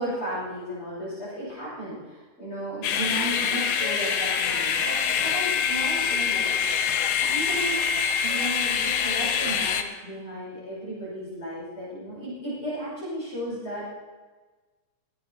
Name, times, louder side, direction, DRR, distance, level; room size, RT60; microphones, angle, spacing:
voice 1, 0.0-6.5 7.2-7.8 8.2-13.9, right 1 dB, 40° left, -9 dB, 6.7 m, -34 dB
sound 1, 2.8-9.8, left 7 dB, 70° left, 2.1 m, -25 dB
23.0 x 9.9 x 4.3 m, 1.3 s
omnidirectional pair, 3.5 m